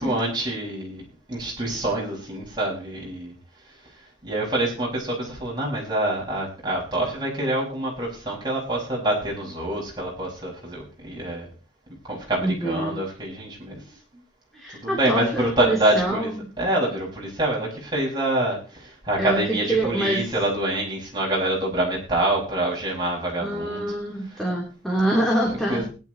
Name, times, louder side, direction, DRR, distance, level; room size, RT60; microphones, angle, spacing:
voice 1, 0.0-3.3 3.8-3.9 4.2-11.5 12.1-14.0 14.7-16.3 16.6-23.8 24.3-24.4 25.5-25.9, right 1 dB, 25° right, -3 dB, 6.1 m, -26 dB
voice 2, 12.4-13.0 14.5-16.4 19.2-20.2 23.4-25.8, right 1 dB, ahead, -4 dB, 3.5 m, -25 dB
20.5 x 10.5 x 3.1 m, 0.34 s
head